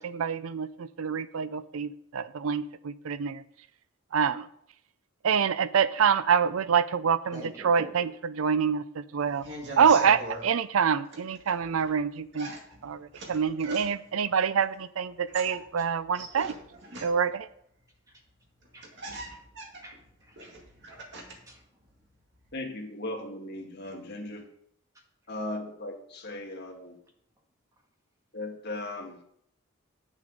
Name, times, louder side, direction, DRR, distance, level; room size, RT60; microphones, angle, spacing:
voice 1, 0.0-3.4 4.1-4.5 5.2-9.4 9.8-12.5 12.8-16.5 17.0-17.5, right 7 dB, 80° right, 15 dB, 0.5 m, -26 dB
voice 2, 7.3-8.1 15.3-15.4 15.8-15.9 18.7-19.4 19.8-20.6 20.9-21.0 21.5-21.7, equal, 15° right, 0 dB, 1.8 m, -47 dB
Shed door latch, 9.2-10.5 11.1-12.0 12.3-14.2 15.1-17.4 18.3-18.4 18.6-21.5 21.9-22.6, right 1 dB, 55° right, 2.1 m, -42 dB
voice 3, 22.5-24.5 25.3-27.0 28.3-29.2, left 1 dB, 50° left, 1 dB, 1.8 m, -37 dB
9.5 x 7.2 x 5.1 m, 0.69 s
head